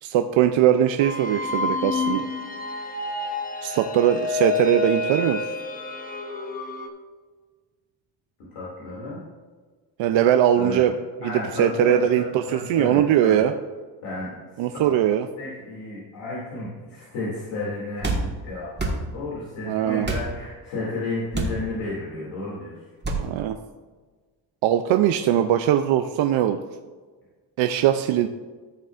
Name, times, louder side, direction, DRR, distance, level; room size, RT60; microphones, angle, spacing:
voice 1, 0.0-2.2 3.6-5.5 10.0-13.5 14.6-15.3 19.7-20.1 23.2-23.6 24.6-26.6 27.6-28.3, right 10 dB, 75° right, 6 dB, 0.6 m, -21 dB
sound 1, 1.0-6.9, left 3 dB, 20° left, 0.8 m, -29 dB
voice 2, 8.5-9.2 10.6-10.8 11.2-12.1 12.5-13.4 14.0-14.3 14.7-14.8 15.4-22.7, left 2 dB, 90° left, -7 dB, 2.7 m, -32 dB
sound 2, 18.0-18.3 18.8-19.0 20.0-20.3 21.3-21.6 23.0-23.2, right 2 dB, 20° right, 1.6 m, -25 dB
14.0 x 6.6 x 2.5 m, 1.4 s
cardioid pair, 110°, 47 cm